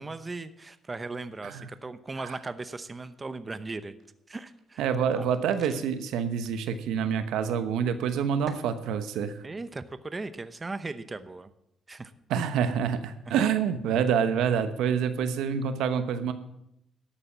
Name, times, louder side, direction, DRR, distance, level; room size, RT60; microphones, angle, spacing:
voice 1, 0.0-4.0 4.3-5.3 9.4-11.5 11.9-12.1 13.3-13.4, right 3 dB, 25° right, 12 dB, 0.8 m, -38 dB
sound 1, 4.0-6.7 7.0-7.1 8.5-8.7, right 5 dB, 50° right, 1.7 m, -48 dB
voice 2, 4.8-9.3 12.3-16.3, right 7 dB, 90° right, 10 dB, 1.0 m, -27 dB
12.5 x 8.6 x 7.4 m, 0.78 s
cardioid pair, 90°, 0 cm